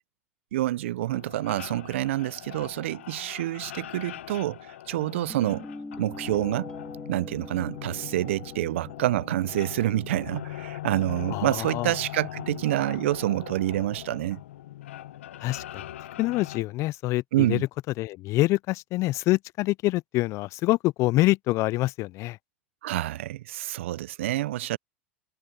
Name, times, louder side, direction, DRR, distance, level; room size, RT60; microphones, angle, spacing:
voice 1, 0.5-5.7 6.0-6.7 7.1-14.4 17.3-17.6 22.8-24.8, right 15 dB, 80° right, 0.5 m, -27 dB
sound 1, 1.1-16.6, left 13 dB, 85° left, 0.9 m, -41 dB
Guitar, 5.0-10.0, left 2 dB, 10° left, 2.9 m, -43 dB
voice 2, 11.3-11.9 15.4-15.8 16.2-17.6 18.0-22.4, left 19 dB, 50° left, 0.4 m, -26 dB
hypercardioid pair, 105°, 7 cm